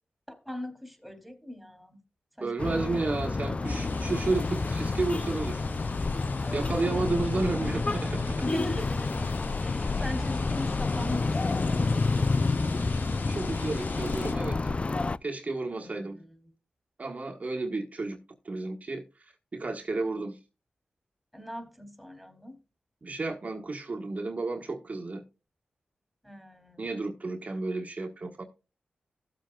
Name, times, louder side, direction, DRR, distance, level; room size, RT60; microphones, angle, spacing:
voice 1, 0.3-2.0 2.4-2.9 6.4-7.1 8.4-9.1 9.6-12.0 15.7-16.3 21.3-22.6 26.2-26.9, left 1 dB, ahead, 3.0 m, -40 dB
voice 2, 2.4-5.6 6.5-8.4 9.8-10.0 13.3-14.7 15.2-16.2 17.0-18.2 18.4-19.0 19.5-20.4 23.0-25.2 26.8-28.4, right 3 dB, 45° right, 1.4 m, -32 dB
sound 1, 2.6-15.2, left 3 dB, 35° left, 0.5 m, -29 dB
sound 2, 3.6-14.3, left 3 dB, 75° left, 1.6 m, -39 dB
16.0 x 7.6 x 2.3 m
cardioid pair, 60°, 3 cm